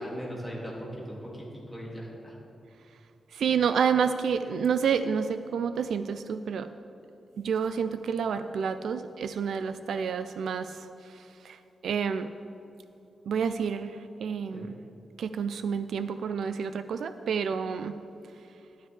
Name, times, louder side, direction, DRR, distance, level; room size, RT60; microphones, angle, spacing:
voice 1, 0.0-2.4 14.5-14.7, equal, 5° right, -4 dB, 2.1 m, -39 dB
voice 2, 3.3-6.7 7.4-10.8 11.4-11.6 11.8-12.3 13.3-13.9 14.2-14.7 15.2-18.0, right 6 dB, 80° right, 11 dB, 0.3 m, -29 dB
12.0 x 10.0 x 3.2 m, 2.9 s
wide cardioid pair, 165°, 0 cm